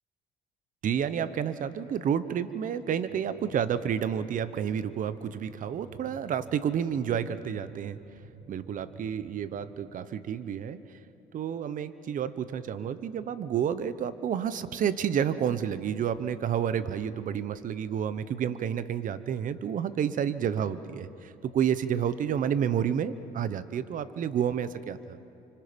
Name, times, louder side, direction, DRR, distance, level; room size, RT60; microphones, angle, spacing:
voice 1, 0.8-8.0 8.5-10.8 11.3-25.2, right 8 dB, 50° right, 13 dB, 1.0 m, -30 dB
sound 1, 3.1-9.9, right 3 dB, 90° right, 4.6 m, -51 dB
29.5 x 25.5 x 5.3 m, 2.8 s
cardioid pair, 110°, 17 cm